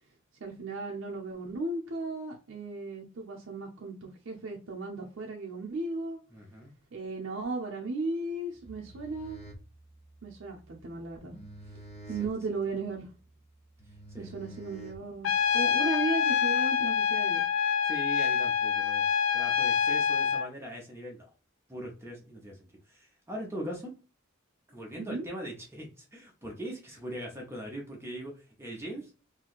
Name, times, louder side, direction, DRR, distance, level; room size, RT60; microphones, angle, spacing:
voice 1, 0.4-6.2 6.9-9.4 10.2-11.4 12.1-13.1 14.2-17.5 25.0-25.2, right 3 dB, 65° right, -2 dB, 0.6 m, -35 dB
voice 2, 6.3-6.7 12.2-12.3 14.1-14.4 17.8-19.1 19.3-21.3 21.7-24.0 24.7-29.1, equal, 10° right, 0 dB, 0.7 m, -41 dB
sound 1, 8.6-15.5, right 1 dB, 35° left, 0.7 m, -49 dB
Trumpet, 15.2-20.5, left 7 dB, 75° left, 0.4 m, -26 dB
3.0 x 2.7 x 2.4 m, 0.35 s
head